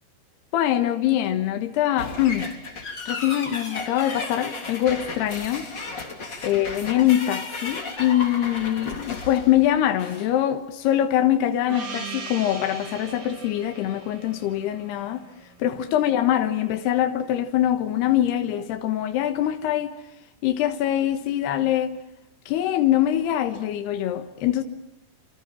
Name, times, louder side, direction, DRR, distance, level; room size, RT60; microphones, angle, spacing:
voice 1, 0.5-2.5 3.1-5.7 6.4-15.3 15.6-19.9 20.4-22.0 22.5-24.6, left 12 dB, 80° left, 3.4 m, -23 dB
sound 1, 2.0-10.3, left 3 dB, 30° left, 3.6 m, -34 dB
Gong, 11.7-16.0, right 4 dB, 65° right, 5.9 m, -39 dB
29.5 x 27.5 x 7.4 m
omnidirectional pair, 4.7 m